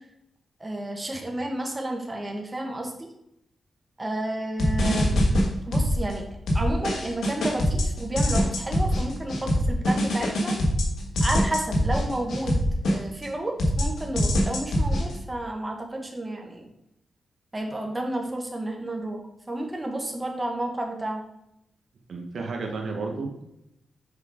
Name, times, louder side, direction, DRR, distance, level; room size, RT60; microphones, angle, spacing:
voice 1, 0.6-3.1 4.0-5.2 5.7-6.2 6.5-10.5 11.2-16.7 17.5-19.2 19.5-21.2, right 1 dB, 20° right, 1 dB, 1.3 m, -31 dB
sound 1, 4.6-6.1 6.5-13.3 13.6-15.1, equal, 90° left, 1.3 m, -23 dB
voice 2, 22.1-23.4, right 3 dB, 70° right, 2 dB, 1.1 m, -32 dB
6.5 x 4.8 x 3.5 m, 0.82 s
cardioid pair, 90°, 0 cm